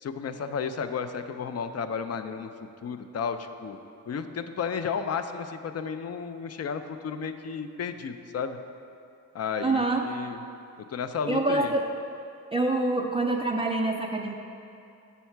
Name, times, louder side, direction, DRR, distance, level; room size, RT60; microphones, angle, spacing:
voice 1, 0.0-2.5 2.8-3.8 4.1-8.6 9.3-10.4 10.9-11.7, left 6 dB, 45° left, 9 dB, 0.5 m, -33 dB
voice 2, 9.6-10.0 11.3-11.9 12.5-14.3, right 2 dB, 15° right, 0 dB, 0.5 m, -26 dB
7.1 x 5.6 x 4.5 m, 2.6 s
supercardioid pair, 55°, 37 cm